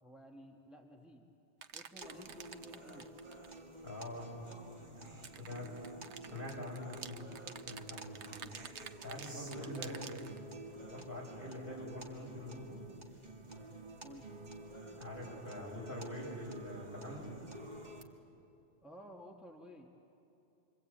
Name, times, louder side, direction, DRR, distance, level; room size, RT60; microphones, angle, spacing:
voice 1, 0.0-1.2 1.7-3.1 9.7-10.3 14.0-14.3 18.8-19.9, equal, ahead, 0 dB, 1.5 m, -54 dB
sound 1, 1.6-3.6 5.1-10.4, right 7 dB, 80° right, 1.1 m, -49 dB
sound 2, 2.0-18.0, right 2 dB, 40° right, 2.1 m, -50 dB
voice 2, 3.8-4.3 4.8-5.7 6.3-7.3 7.6-8.5 9.0-10.0 10.8-12.8 15.0-17.3, left 1 dB, 50° left, -3 dB, 7.1 m, -45 dB
28.0 x 24.0 x 8.7 m, 2.8 s
omnidirectional pair, 1.2 m